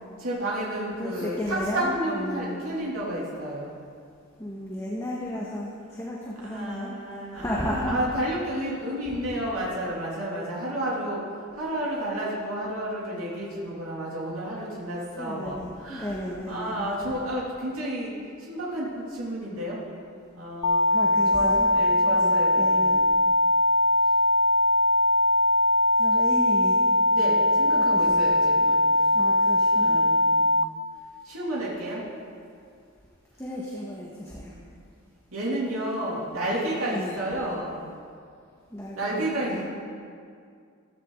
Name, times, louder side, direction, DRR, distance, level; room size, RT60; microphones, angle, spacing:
voice 1, 0.2-3.7 6.5-11.2 11.5-16.2 16.5-18.1 18.5-19.8 20.3-21.0 21.3-22.8 27.1-28.8 29.8-30.4 31.2-32.0 35.3-37.8 38.9-39.6, right 1 dB, 80° right, -6 dB, 3.1 m, -31 dB
voice 2, 1.0-2.8 4.4-7.0 7.3-8.0 15.2-16.9 20.9-21.7 22.1-23.0 26.0-26.8 27.8-28.3 29.1-30.0 33.4-34.5 36.8-37.2 38.7-39.6, left 1 dB, 15° left, -5 dB, 1.7 m, -34 dB
sound 1, 20.6-30.6, left 1 dB, 80° left, 0.6 m, -21 dB
15.5 x 14.5 x 4.0 m, 2.3 s
head